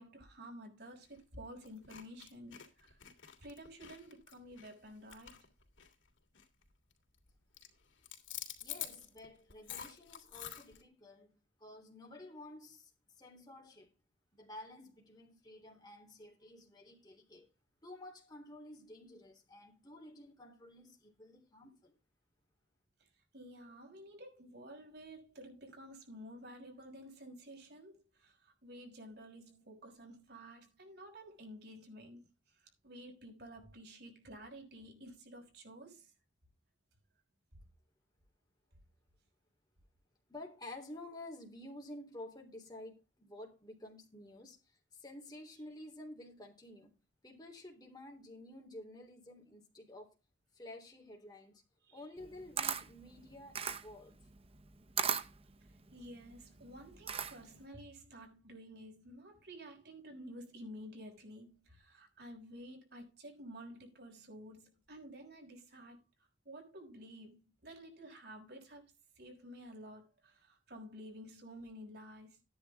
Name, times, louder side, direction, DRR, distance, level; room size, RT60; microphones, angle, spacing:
voice 1, 0.0-3.0 3.4-5.5 23.3-32.3 32.8-36.1 51.9-52.0 55.9-66.0 66.4-68.8 69.2-72.4, equal, 55° right, 5.8 m, -52 dB
sound 1, 1.0-1.2 1.6-6.1 6.3-6.6 6.9-7.3 7.5-10.8, left 11 dB, 80° left, 2.9 m, -48 dB
voice 2, 8.6-13.9 14.3-17.5 17.8-22.0 40.3-47.0 47.2-50.1 50.5-51.6 51.9-54.2, left 1 dB, 20° left, 3.4 m, -51 dB
Camera, 52.2-57.6, right 7 dB, 30° right, 0.9 m, -38 dB
13.0 x 10.5 x 3.6 m
head